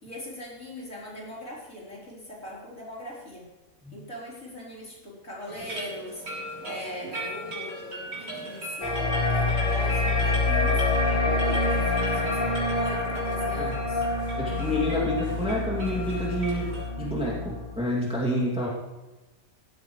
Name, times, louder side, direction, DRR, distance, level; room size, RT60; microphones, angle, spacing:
voice 1, 0.0-3.4 3.9-6.2 6.6-10.9 11.3-14.1, left 1 dB, 50° left, -5 dB, 4.5 m, -40 dB
sound 1, 5.5-16.8, equal, 80° right, 4.4 m, -38 dB
sound 2, 8.8-17.8, left 2 dB, 30° left, 1.9 m, -26 dB
voice 2, 14.4-18.7, left 1 dB, 5° right, -4 dB, 2.4 m, -28 dB
15.5 x 13.5 x 3.2 m, 1.1 s
omnidirectional pair, 1.8 m